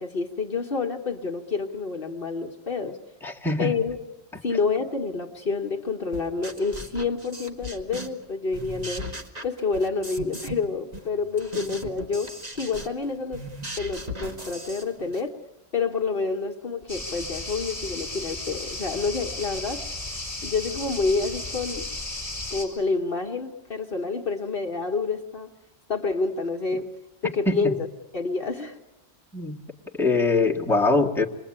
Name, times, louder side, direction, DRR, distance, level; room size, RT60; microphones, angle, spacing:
voice 1, 0.0-3.0 3.6-4.0 4.4-9.1 9.4-13.5 13.8-15.3 15.7-19.8 20.4-21.9 22.5-25.5 25.9-26.9 27.2-27.9 28.1-28.8, left 4 dB, 55° left, 4 dB, 1.4 m, -28 dB
voice 2, 3.2-3.7 27.5-27.7 29.3-29.6 30.0-31.2, left 3 dB, ahead, -4 dB, 2.0 m, -22 dB
sound 1, 6.1-8.2 8.5-10.6 10.9-15.3, equal, 35° right, 2.2 m, -38 dB
sound 2, 16.9-22.7, left 2 dB, 15° right, 6.6 m, -34 dB
28.0 x 22.0 x 8.7 m, 1.1 s
omnidirectional pair, 1.1 m